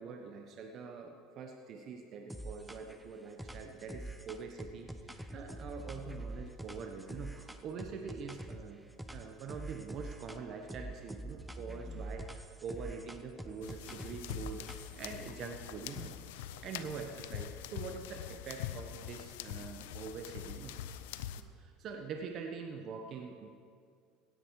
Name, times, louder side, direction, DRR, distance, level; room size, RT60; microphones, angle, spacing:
voice 1, 0.0-8.8 9.1-16.1 16.4-20.7 21.6-23.5, right 5 dB, 50° right, 4 dB, 1.1 m, -44 dB
sound 1, 2.3-3.0 3.4-8.7 9.0-10.4 10.7-15.1, right 1 dB, 5° right, 0.9 m, -45 dB
sound 2, 13.6-21.4, left 11 dB, 80° left, 0.6 m, -44 dB
17.0 x 10.0 x 4.7 m, 2.2 s
supercardioid pair, 95°, 0 cm